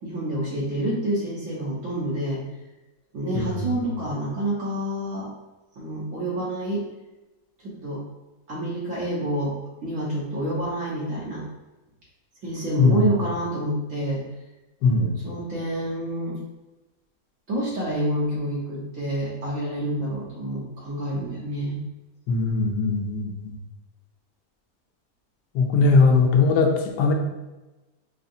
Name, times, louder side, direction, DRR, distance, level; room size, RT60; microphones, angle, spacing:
voice 1, 0.0-2.4 3.1-5.3 5.8-6.8 7.6-8.0 8.5-9.5 9.8-11.4 12.4-14.2 15.2-16.4 17.5-21.8, right 1 dB, 50° right, -6 dB, 1.4 m, -28 dB
voice 2, 12.8-13.1 14.8-15.2 22.3-23.6 25.5-27.1, left 3 dB, 85° left, 2 dB, 1.2 m, -20 dB
5.6 x 2.4 x 2.6 m, 1.1 s
omnidirectional pair, 1.8 m